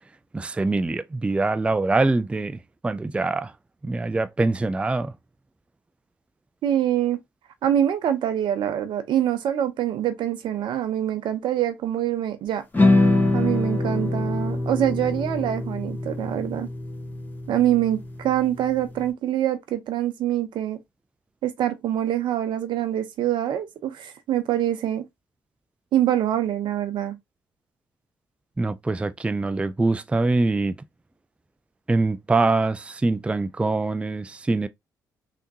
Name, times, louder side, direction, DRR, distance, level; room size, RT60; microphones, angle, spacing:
voice 1, 0.3-3.5 3.8-5.1 28.6-30.7 31.9-34.7, right 3 dB, 15° right, 0.3 m, -24 dB
voice 2, 6.6-7.2 7.6-12.6 13.3-16.7 17.5-20.8 21.4-25.0 25.9-27.2, right 11 dB, 65° right, 0.7 m, -25 dB
sound 1, 12.7-19.0, left 2 dB, 20° left, 1.4 m, -24 dB
3.4 x 2.9 x 2.7 m
hypercardioid pair, 50°, 9 cm